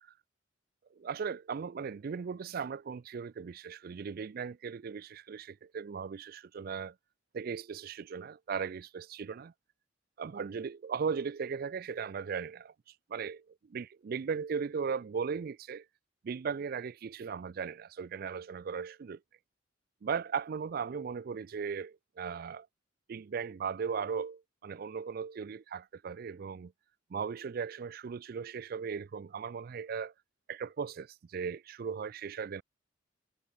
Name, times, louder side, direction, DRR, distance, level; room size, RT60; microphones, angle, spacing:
voice 1, 1.0-6.9 7.3-9.5 10.2-12.7 13.1-13.4 13.7-15.8 16.2-19.2 20.0-22.7 23.1-26.7 27.1-30.1 30.5-32.6, right 6 dB, 50° right, 0.4 m, -37 dB
head